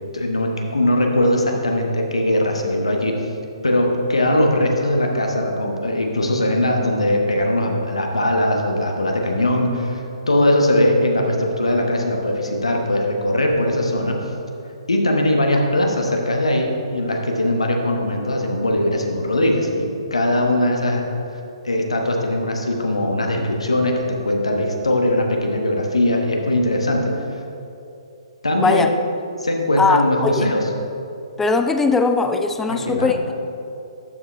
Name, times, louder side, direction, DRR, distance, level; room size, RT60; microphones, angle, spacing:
voice 1, 0.1-3.1 3.6-14.2 14.9-21.0 21.6-27.1 28.4-28.9 29.4-30.6 32.7-33.1, left 1 dB, 85° left, 2 dB, 1.1 m, -20 dB
voice 2, 28.6-28.9 29.8-30.5 31.4-33.3, left 4 dB, 10° left, 7 dB, 0.4 m, -19 dB
12.5 x 5.0 x 3.3 m, 2.7 s
figure-of-eight pair, 130°, 3 cm